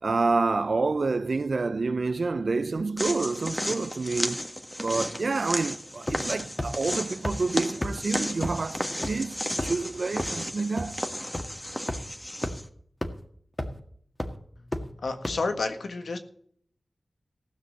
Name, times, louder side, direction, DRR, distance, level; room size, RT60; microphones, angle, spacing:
voice 1, 0.0-4.5 4.8-11.0, right 3 dB, 65° right, 0.5 m, -28 dB
sound 1, 3.0-12.7, equal, 10° left, 1.6 m, -34 dB
sound 2, 6.1-6.3 6.6-6.7 7.2-7.3 7.8-7.9 8.4-8.5 9.0-9.1 9.6-9.8 10.2-10.3 10.8-10.9 11.3-11.4 11.9-12.0 12.4-12.5 13.0-13.1 13.6-13.8 14.2-14.3 14.7-14.8 15.2-15.3, left 1 dB, 25° left, 1.8 m, -30 dB
voice 2, 14.6-16.2, left 3 dB, 85° left, 1.6 m, -31 dB
16.0 x 6.0 x 7.5 m
cardioid pair, 50°, 0 cm